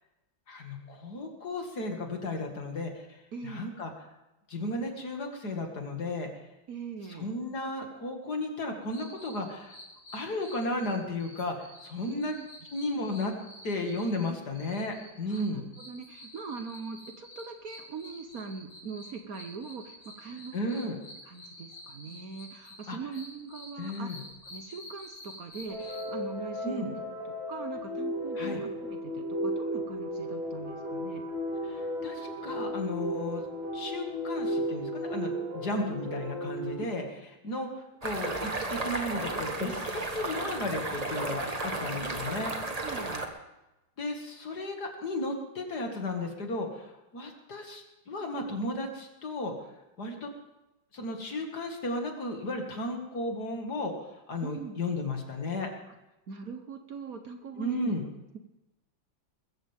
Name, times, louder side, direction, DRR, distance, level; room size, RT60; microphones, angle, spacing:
voice 1, 0.5-3.9 4.5-6.3 7.2-9.8 10.1-12.3 12.7-13.3 13.6-15.6 20.3-21.0 22.9-23.0 23.8-24.2 26.6-26.9 28.4-28.6 31.6-33.4 33.7-37.0 37.4-42.5 44.0-49.5 50.0-50.3 50.9-55.7 57.6-58.0, left 2 dB, 55° left, 2 dB, 2.7 m, -34 dB
voice 2, 3.3-3.8 6.7-7.3 12.1-12.5 15.3-20.6 21.3-24.2 24.5-27.0 27.2-31.2 42.0-42.1 42.4-42.6 42.8-43.3 54.4-54.8 55.9-56.0 56.3-57.9, right 5 dB, 55° right, 6 dB, 1.4 m, -41 dB
sound 1, 8.9-26.1, left 1 dB, 85° left, 4.3 m, -49 dB
sound 2, 25.7-36.7, equal, 75° right, 8.6 m, -34 dB
sound 3, 38.0-43.3, right 2 dB, 20° right, 1.3 m, -34 dB
21.0 x 15.0 x 3.6 m, 0.97 s
omnidirectional pair, 2.1 m